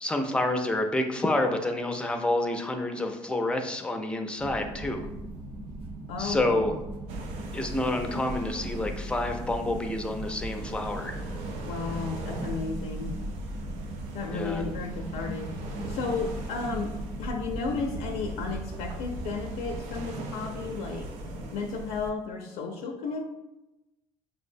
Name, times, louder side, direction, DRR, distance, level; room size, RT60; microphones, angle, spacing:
voice 1, 0.0-5.1 6.2-6.8 7.5-11.2 14.3-14.7, left 1 dB, 10° left, 4 dB, 0.4 m, -28 dB
sound 1, 4.4-19.8, right 2 dB, 55° right, 0.8 m, -39 dB
voice 2, 6.1-6.6 11.6-13.1 14.1-21.1 21.5-23.2, left 4 dB, 75° left, 2 dB, 0.5 m, -33 dB
sound 2, 7.1-22.1, right 1 dB, 85° right, 0.5 m, -40 dB
6.0 x 2.0 x 2.6 m, 0.97 s
cardioid pair, 115°, 11 cm